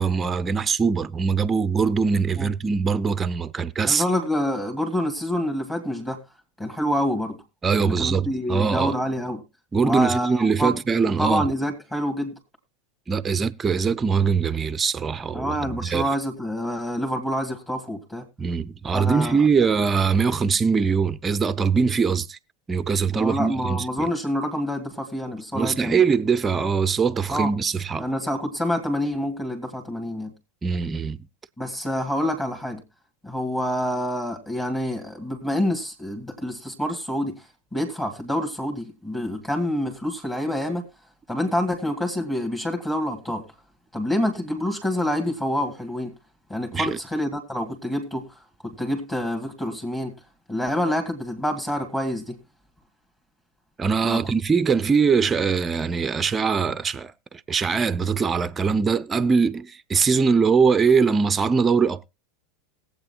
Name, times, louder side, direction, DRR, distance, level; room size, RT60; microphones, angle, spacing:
voice 1, 0.0-4.0 7.6-8.9 9.7-11.5 13.1-16.1 18.4-22.4 22.7-24.1 25.5-28.1 30.6-31.3 46.7-47.0 53.8-62.1, right 5 dB, 20° right, 0.5 m, -22 dB
voice 2, 3.8-6.2 6.6-7.4 7.8-9.4 9.8-10.7 11.0-12.3 15.3-18.3 18.9-19.4 23.1-26.0 27.3-27.5 28.0-30.3 31.6-32.8 33.2-37.4 37.7-40.9 41.3-43.4 43.9-46.1 46.5-48.3 48.6-50.1 50.5-52.4 54.0-54.2, equal, 15° left, 2.2 m, -27 dB
20.5 x 8.0 x 2.3 m
figure-of-eight pair, 85°, 0 cm